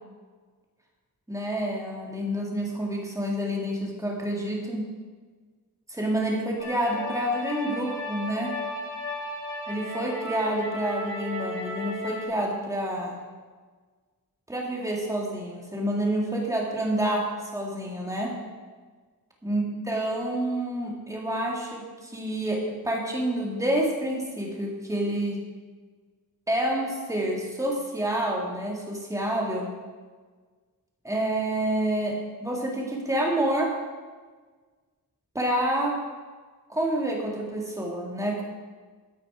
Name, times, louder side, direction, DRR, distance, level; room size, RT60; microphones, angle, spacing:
voice 1, 1.3-4.8 5.9-8.5 9.7-13.2 14.5-18.3 19.4-25.4 26.5-29.7 31.0-33.7 35.3-36.0 36.7-38.4, right 1 dB, 10° right, -1 dB, 2.0 m, -28 dB
sound 1, 6.6-12.2, left 1 dB, 35° left, 2.2 m, -34 dB
12.5 x 9.1 x 4.9 m, 1.5 s
wide cardioid pair, 175°, 35 cm